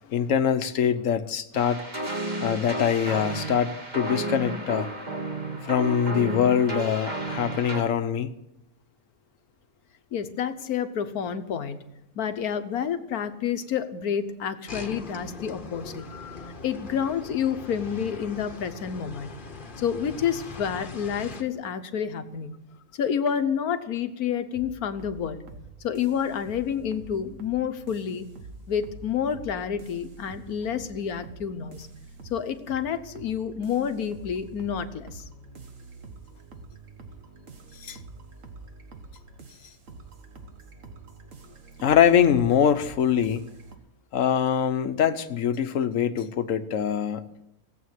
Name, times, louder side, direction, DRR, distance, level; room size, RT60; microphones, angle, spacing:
voice 1, 0.1-1.8 2.4-4.9 5.6-8.3 16.1-16.5 37.8-38.0 41.8-43.5 44.1-47.3, left 8 dB, 65° left, 11 dB, 1.3 m, -23 dB
sound 1, 1.5-7.8, right 2 dB, 30° right, 2.3 m, -32 dB
voice 2, 10.1-11.8 12.1-16.1 16.6-19.3 19.8-22.5 22.9-25.4 25.8-28.3 28.7-31.9 32.3-35.2, left 8 dB, 90° left, 10 dB, 1.5 m, -29 dB
sound 2, 14.7-21.4, left 4 dB, 35° left, 1.3 m, -41 dB
sound 3, 24.5-43.8, right 3 dB, 60° right, 1.8 m, -46 dB
17.5 x 8.3 x 9.4 m, 0.87 s
omnidirectional pair, 1.5 m